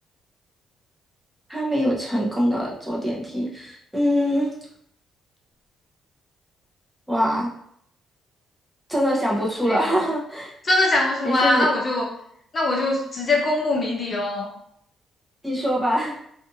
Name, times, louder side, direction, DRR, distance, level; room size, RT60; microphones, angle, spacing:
voice 1, 1.5-4.5 7.1-7.5 8.9-10.5 11.2-11.7 15.4-16.1, equal, 5° right, -4 dB, 0.8 m, -23 dB
voice 2, 10.6-12.1 12.5-14.5, left 2 dB, 40° left, -2 dB, 0.7 m, -22 dB
2.6 x 2.5 x 2.6 m, 0.70 s
cardioid pair, 90°, 0 cm